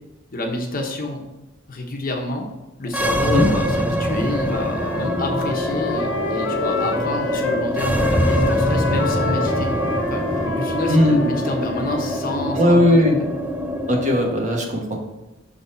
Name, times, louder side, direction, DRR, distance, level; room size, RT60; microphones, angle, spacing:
voice 1, 0.3-1.2 1.7-2.5 2.8-9.7 10.1-13.3, left 2 dB, 45° left, 2 dB, 1.0 m, -29 dB
sound 1, 2.9-14.4, equal, 10° right, 0.5 m, -24 dB
Wind instrument woodwind instrument, 4.2-7.7 8.0-12.2, left 4 dB, 70° left, 0.6 m, -29 dB
sound 2, 4.5-10.4, equal, 60° right, 1.3 m, -33 dB
voice 2, 10.9-11.2 12.5-13.1 13.9-15.0, left 1 dB, 40° right, 1 dB, 1.1 m, -17 dB
6.5 x 4.0 x 4.3 m, 1.1 s
head